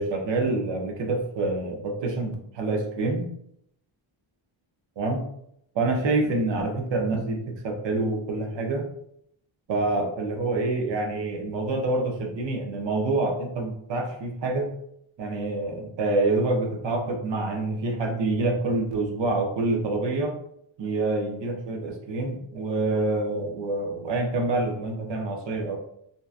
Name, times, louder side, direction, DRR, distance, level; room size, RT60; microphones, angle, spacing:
voice 1, 0.0-3.3 5.0-5.2 5.7-8.9 9.7-14.7 15.2-20.3 20.8-25.8, right 2 dB, 60° right, 2 dB, 0.7 m, -27 dB
2.7 x 2.3 x 2.4 m, 0.73 s
wide cardioid pair, 130°, 49 cm